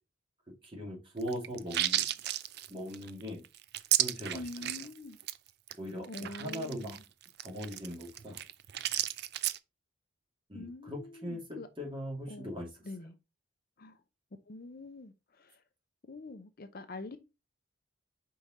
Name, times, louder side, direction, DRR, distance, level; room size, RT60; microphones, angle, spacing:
voice 1, 0.6-2.0 2.7-3.4 4.0-4.4 5.7-7.0 7.4-8.4 10.5-12.7, equal, 25° right, 2.4 m, -40 dB
sound 1, 1.2-4.9 5.2-5.4 5.7-5.8 6.0-9.6, right 13 dB, 55° right, 0.4 m, -33 dB
voice 2, 4.3-5.2 6.1-7.0 10.5-11.7 12.3-12.5 12.8-13.2 13.8-14.0 14.5-15.6 16.0-17.2, left 2 dB, 50° left, 0.6 m, -45 dB
5.2 x 4.7 x 4.1 m
head